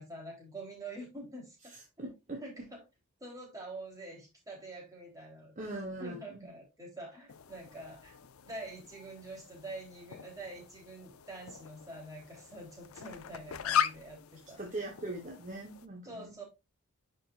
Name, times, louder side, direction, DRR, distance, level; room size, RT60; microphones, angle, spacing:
voice 1, 0.0-1.7 2.0-2.1 2.4-2.8 3.2-5.7 6.0-14.6 16.0-16.4, right 2 dB, 15° right, -2 dB, 3.5 m, -46 dB
voice 2, 1.7-2.4 5.6-6.4 14.6-16.4, right 2 dB, 35° right, 2 dB, 1.2 m, -41 dB
sound 1, 7.3-15.9, left 9 dB, 85° left, 0.5 m, -39 dB
10.0 x 5.2 x 2.5 m, 0.24 s
head